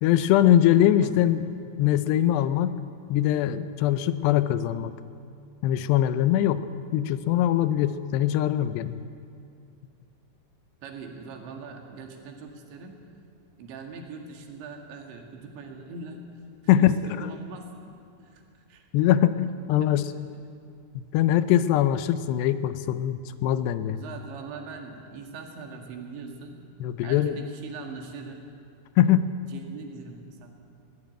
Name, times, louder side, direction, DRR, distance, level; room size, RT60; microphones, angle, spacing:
voice 1, 0.0-2.7 3.1-4.9 5.6-6.7 6.9-8.9 16.7-17.3 18.9-20.1 21.1-24.0 26.8-27.4 29.0-29.3, left 11 dB, 80° left, 12 dB, 2.7 m, -22 dB
voice 2, 1.0-1.4 10.8-13.0 13.6-18.4 18.7-18.9 19.8-20.0 23.9-26.6 27.0-28.4 29.5-30.7, right 4 dB, 90° right, 3 dB, 4.4 m, -42 dB
20.5 x 16.5 x 9.0 m, 2.4 s
omnidirectional pair, 5.1 m